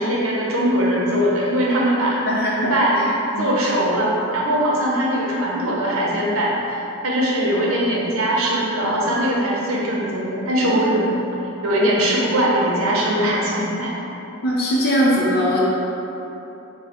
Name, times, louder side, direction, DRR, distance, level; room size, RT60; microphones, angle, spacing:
voice 1, 0.0-2.2 2.7-3.1 3.4-11.2 11.6-13.9, right 1 dB, 70° right, -4 dB, 0.7 m, -21 dB
voice 2, 2.3-3.1 3.3-3.5 14.4-15.6, equal, 45° left, -5 dB, 0.6 m, -20 dB
5.4 x 2.1 x 2.9 m, 3.0 s
head